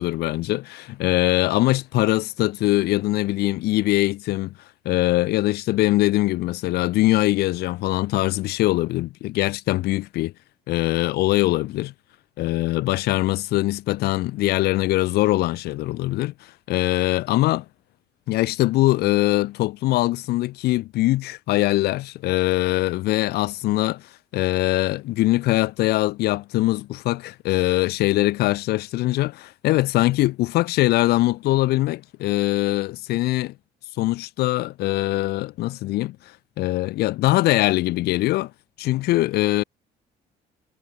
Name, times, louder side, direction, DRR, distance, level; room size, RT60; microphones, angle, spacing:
voice 1, 0.0-4.5 4.8-10.3 10.7-11.9 12.4-16.3 16.7-17.6 18.3-24.0 24.3-33.5 34.0-36.2 36.6-38.5 38.8-39.6, left 17 dB, 70° left, 0.5 m, -22 dB
cardioid pair, 110°, 17 cm